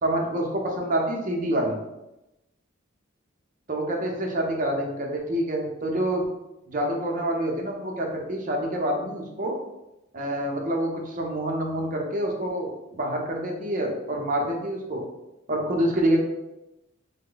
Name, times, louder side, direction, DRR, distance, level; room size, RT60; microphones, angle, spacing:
voice 1, 0.0-1.8 3.7-6.3 6.7-9.5 10.1-15.0 15.5-16.2, right 1 dB, 40° right, 0 dB, 0.6 m, -27 dB
3.0 x 2.1 x 3.8 m, 0.94 s
head